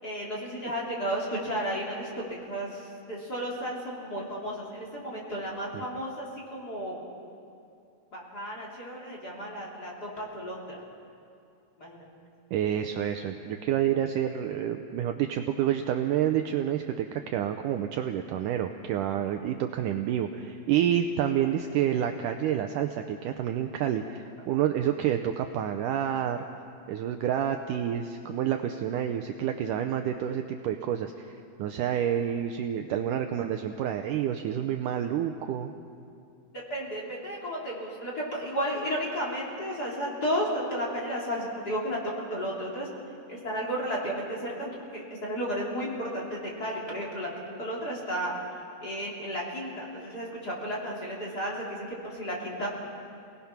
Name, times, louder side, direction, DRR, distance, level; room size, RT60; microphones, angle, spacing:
voice 1, 0.0-2.1 2.5-7.0 8.1-10.8 11.8-12.0 36.7-42.0 42.3-42.9 43.3-47.3 47.6-48.3 48.8-52.7, equal, 25° left, -4 dB, 3.4 m, -33 dB
voice 2, 12.5-26.4 26.9-35.7, right 10 dB, 85° right, 6 dB, 1.9 m, -29 dB
28.5 x 18.5 x 5.9 m, 2.5 s
omnidirectional pair, 4.4 m